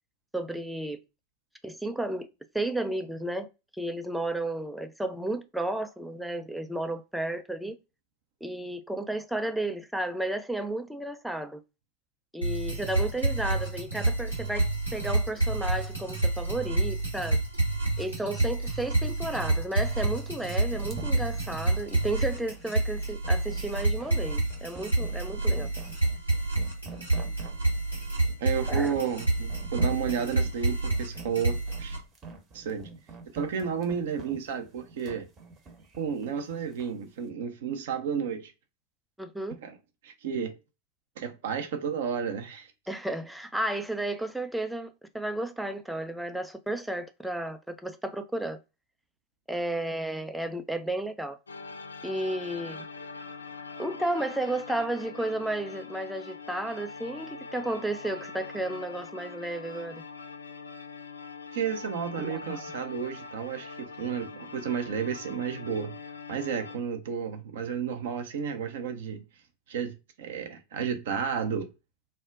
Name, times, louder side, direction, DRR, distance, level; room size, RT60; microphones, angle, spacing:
voice 1, 0.3-1.0 1.6-2.3 2.5-3.5 3.8-7.8 8.4-11.6 12.3-17.4 18.0-25.7 28.7-28.9 39.2-39.6 42.9-48.6 49.5-51.4 52.0-52.8 53.8-60.0 62.2-62.6, right 1 dB, 5° right, 0.4 m, -33 dB
sound 1, 12.4-32.0, right 2 dB, 90° right, 1.1 m, -28 dB
sound 2, 20.7-37.0, right 3 dB, 25° right, 0.8 m, -46 dB
voice 2, 28.4-32.0 32.5-32.9 33.3-35.3 36.0-38.5 39.6-39.7 40.0-40.6 41.2-42.7 61.5-65.9 66.3-69.2 69.7-71.7, right 7 dB, 55° right, 0.5 m, -32 dB
sound 3, 51.5-66.8, left 4 dB, 75° left, 0.3 m, -43 dB
2.2 x 2.1 x 3.6 m
figure-of-eight pair, 90°, 0 cm